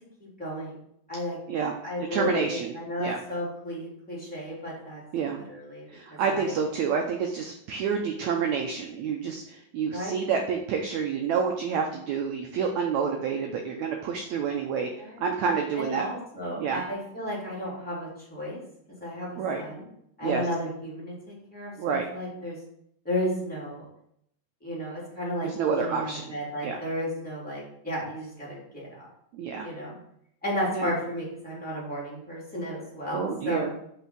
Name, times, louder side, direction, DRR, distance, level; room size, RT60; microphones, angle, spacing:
voice 1, 0.2-0.8 1.1-1.4 1.8-5.0 5.3-6.6 9.9-10.2 15.0-15.2 15.8-18.6 19.0-19.9 20.2-22.6 23.0-23.8 24.6-25.5 25.7-29.1 29.6-29.9 30.4-33.7, equal, 5° left, -7 dB, 2.8 m, -33 dB
voice 2, 2.1-2.7 3.0-3.2 5.1-5.4 5.9-16.0 16.6-16.8 19.4-19.6 20.2-20.5 21.8-22.1 25.4-26.2 26.6-26.8 29.3-29.7 30.7-30.9 33.1-33.7, right 6 dB, 80° right, 3 dB, 1.6 m, -28 dB
5.8 x 5.5 x 5.9 m, 0.72 s
omnidirectional pair, 4.1 m